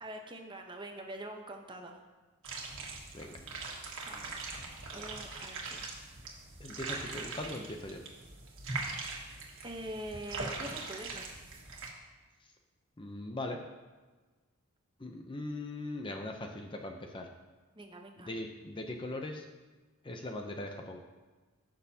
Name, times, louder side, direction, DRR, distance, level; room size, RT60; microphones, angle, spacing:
voice 1, 0.0-2.1 4.1-4.5 4.9-5.9 9.6-11.3 17.7-18.3, right 1 dB, 20° right, 3 dB, 0.8 m, -44 dB
sound 1, 2.4-11.9, right 3 dB, 60° right, 1.6 m, -41 dB
voice 2, 6.6-8.0 13.0-13.6 15.0-17.3 18.3-19.5 20.0-21.0, left 1 dB, 20° left, 4 dB, 0.6 m, -40 dB
16.0 x 6.3 x 2.8 m, 1.3 s
head